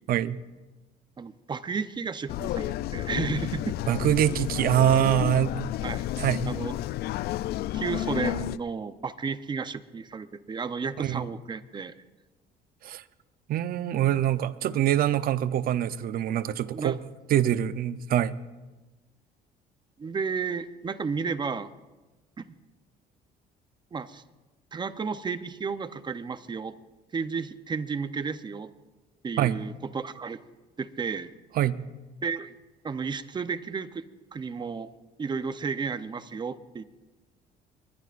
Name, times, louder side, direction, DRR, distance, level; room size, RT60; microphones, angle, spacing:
voice 1, 0.1-0.4 3.9-5.7 6.2-6.5 11.0-11.2 12.8-13.0 13.5-17.0 17.3-18.4 29.4-29.6 31.6-31.8, right 11 dB, 60° right, 14 dB, 0.7 m, -24 dB
voice 2, 1.2-3.8 5.8-6.1 6.5-6.8 7.7-12.0 16.7-17.0 20.0-21.7 22.4-22.5 23.9-24.2 24.7-26.8 27.1-28.7 29.2-30.4 30.8-31.3 32.2-32.5 32.8-34.0 34.3-34.9 35.2-36.8, right 5 dB, 25° right, 12 dB, 0.7 m, -32 dB
sound 1, 2.3-8.6, left 14 dB, 70° left, 0.4 m, -31 dB
23.0 x 20.5 x 2.5 m, 1.2 s
cardioid pair, 110°, 17 cm